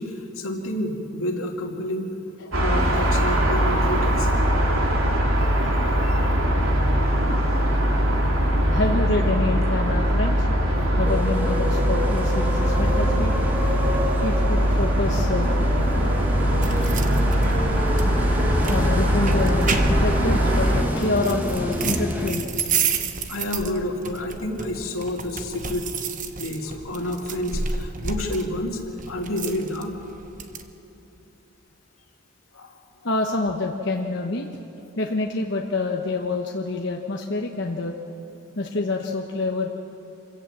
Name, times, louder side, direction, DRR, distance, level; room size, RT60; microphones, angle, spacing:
voice 1, 0.0-2.1 2.6-4.4 5.5-5.6 6.0-6.2 22.8-23.0 23.3-25.9 26.4-28.8 29.1-29.9 32.5-32.7, left 1 dB, 85° left, 1 dB, 2.6 m, -29 dB
sound 1, 2.5-20.8, equal, 75° right, 3.1 m, -21 dB
voice 2, 8.7-10.5 11.0-13.3 14.2-15.6 18.7-22.5 33.0-34.5 35.0-38.0 38.6-39.7, left 2 dB, 55° left, 1 dB, 1.1 m, -27 dB
sound 2, 11.1-22.3, equal, 10° right, 1.8 m, -29 dB
sound 3, 16.6-30.6, right 5 dB, 40° right, 1.1 m, -31 dB
26.5 x 16.5 x 7.5 m, 3.0 s
head